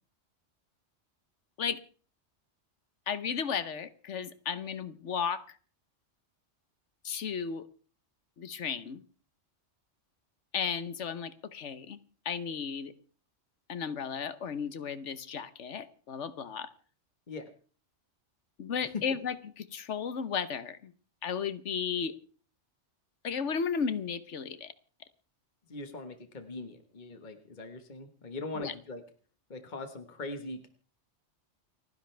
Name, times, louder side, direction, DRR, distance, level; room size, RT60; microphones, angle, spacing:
voice 1, 3.1-5.4 7.0-7.6 8.4-9.0 10.5-12.0 12.2-12.9 13.7-16.7 18.6-20.9 21.2-22.1 23.2-24.7 28.5-28.7, left 6 dB, 75° left, 14 dB, 1.3 m, -34 dB
voice 2, 25.7-29.0 29.5-30.7, left 2 dB, 40° left, 7 dB, 1.6 m, -41 dB
29.5 x 10.5 x 3.4 m, 0.41 s
omnidirectional pair, 1.2 m